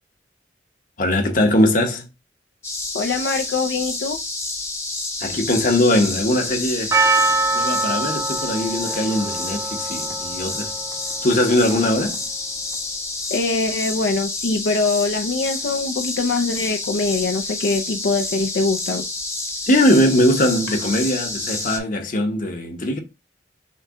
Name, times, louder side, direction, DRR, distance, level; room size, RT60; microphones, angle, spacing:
voice 1, 1.0-2.1 5.2-7.0 7.5-10.7 11.2-12.2 19.7-23.0, left 1 dB, 50° left, 0.9 m, -20 dB
sound 1, 2.6-21.8, left 2 dB, 15° left, 0.8 m, -29 dB
voice 2, 2.9-4.2 13.3-19.0, left 3 dB, 75° left, 0.5 m, -23 dB
Percussion, 6.9-12.1, right 3 dB, 15° right, 0.6 m, -24 dB
6.4 x 2.2 x 3.6 m
head